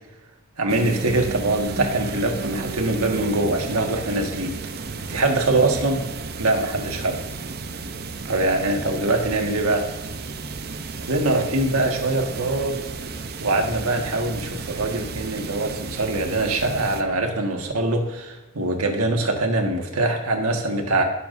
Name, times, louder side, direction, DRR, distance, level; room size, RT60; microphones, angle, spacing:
voice 1, 0.6-4.5 5.1-6.0 6.4-7.2 8.2-9.8 11.1-12.8 13.4-21.0, right 2 dB, 80° right, 2 dB, 1.7 m, -23 dB
sound 1, 0.7-17.0, right 3 dB, 45° right, 0.7 m, -33 dB
17.5 x 7.1 x 2.6 m, 1.1 s
head